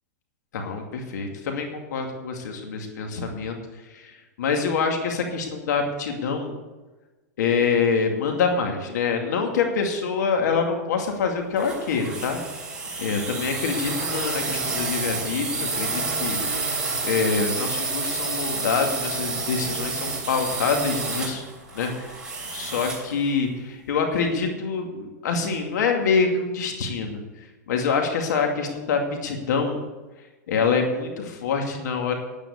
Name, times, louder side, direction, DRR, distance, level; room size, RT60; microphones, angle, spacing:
voice 1, 0.5-3.6 3.9-4.1 4.4-6.6 7.4-12.4 13.0-16.7 17.0-21.4 21.7-22.1 22.5-27.2 27.7-29.8 30.5-32.1, left 5 dB, 75° left, 3 dB, 2.5 m, -25 dB
sound 1, 11.6-23.1, right 3 dB, 10° right, 3.3 m, -29 dB
9.8 x 9.3 x 8.2 m, 1.2 s
hypercardioid pair, 135°, 10 cm